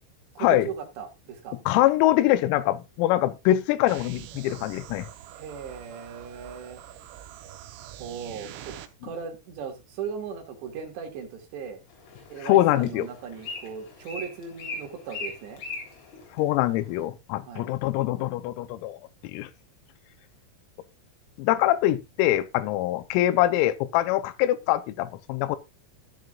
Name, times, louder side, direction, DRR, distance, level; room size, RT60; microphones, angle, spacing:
voice 1, 0.4-1.6 5.4-6.8 8.0-8.7 9.0-11.8 12.3-15.6 17.5-17.7, right 6 dB, 60° right, 4.2 m, -37 dB
voice 2, 1.7-5.1 12.4-13.1 16.4-19.0 19.3-19.5 21.4-25.6, left 14 dB, 85° left, 3.5 m, -23 dB
sound 1, 3.9-8.9, right 12 dB, 80° right, 3.6 m, -44 dB
Bird, 11.9-17.0, left 3 dB, 65° left, 5.9 m, -40 dB
14.5 x 11.0 x 2.4 m
omnidirectional pair, 6.0 m